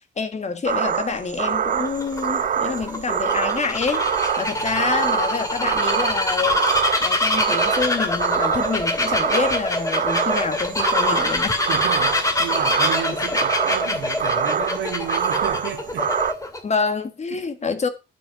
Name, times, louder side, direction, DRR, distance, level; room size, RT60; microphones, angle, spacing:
voice 1, 0.2-4.1 4.4-6.6 7.0-11.6 16.6-17.9, left 5 dB, 35° left, 1.6 m, -27 dB
sound 1, 0.7-16.3, right 8 dB, 40° right, 0.7 m, -25 dB
Bird vocalization bird call bird song, 1.6-16.6, left 2 dB, 15° left, 2.2 m, -25 dB
voice 2, 11.7-16.1 17.3-17.4, right 8 dB, 70° right, 2.6 m, -33 dB
9.6 x 7.8 x 4.8 m
cardioid pair, 90°, 20 cm